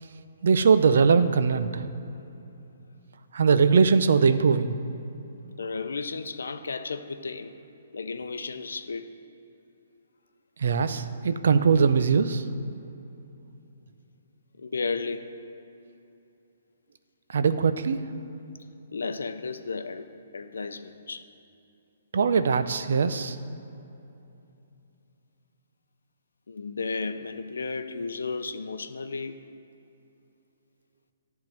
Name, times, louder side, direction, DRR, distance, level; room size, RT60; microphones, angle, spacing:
voice 1, 0.4-1.8 3.3-4.8 10.6-12.4 17.3-18.0 22.1-23.4, right 5 dB, 70° right, 11 dB, 0.5 m, -21 dB
voice 2, 5.6-7.5 7.9-9.1 14.6-15.3 18.9-20.1 20.3-21.2 26.5-29.4, left 4 dB, 85° left, 10 dB, 0.6 m, -33 dB
10.5 x 3.7 x 7.4 m, 2.8 s
hypercardioid pair, 145°, 0 cm